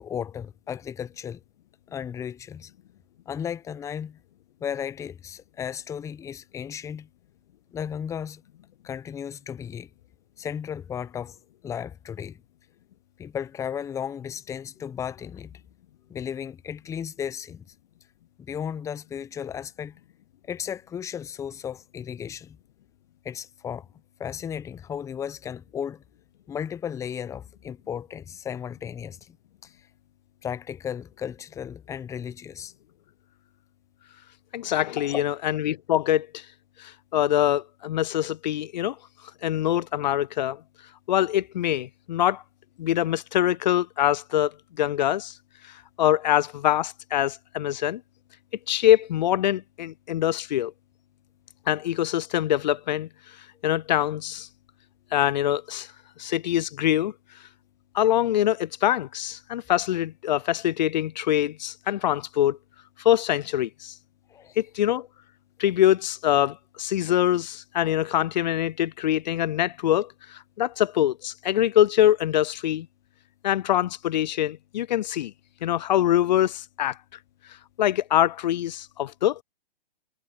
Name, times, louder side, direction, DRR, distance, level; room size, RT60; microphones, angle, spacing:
voice 1, 0.0-1.4 1.9-2.7 3.3-4.2 4.6-7.1 7.7-8.4 8.8-9.9 10.4-11.4 11.6-12.4 13.2-15.5 16.1-17.6 18.4-20.0 20.5-22.6 23.2-23.9 24.2-26.0 26.5-29.4 29.6-29.8 30.4-32.7 35.0-35.2 64.3-64.6, left 8 dB, 10° left, 0.8 m, -35 dB
voice 2, 34.5-36.4 36.8-39.0 39.4-40.6 41.1-42.4 42.8-44.5 44.8-45.3 46.0-48.0 48.7-50.7 51.7-53.1 53.6-54.5 55.1-55.9 56.2-57.1 57.9-62.6 63.0-63.9 64.6-65.1 65.6-72.9 73.4-75.3 75.6-77.0 77.8-79.4, left 12 dB, 45° left, 0.5 m, -24 dB
figure-of-eight pair, 125°, 30 cm